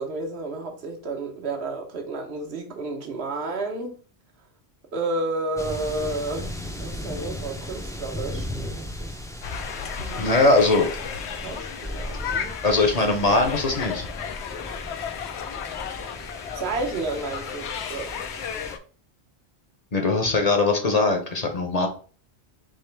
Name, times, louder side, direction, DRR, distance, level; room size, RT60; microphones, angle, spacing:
voice 1, 0.0-4.0 4.9-9.2 9.9-10.5 11.4-12.6 16.5-18.1, right 2 dB, 75° right, 1.2 m, -31 dB
sound 1, 5.6-18.7, left 1 dB, 5° left, 0.3 m, -37 dB
sound 2, 9.4-18.8, left 7 dB, 90° left, 0.9 m, -34 dB
voice 2, 10.2-10.9 12.6-14.0 19.9-21.9, left 3 dB, 40° left, 0.7 m, -21 dB
3.6 x 2.9 x 4.4 m
omnidirectional pair, 1.1 m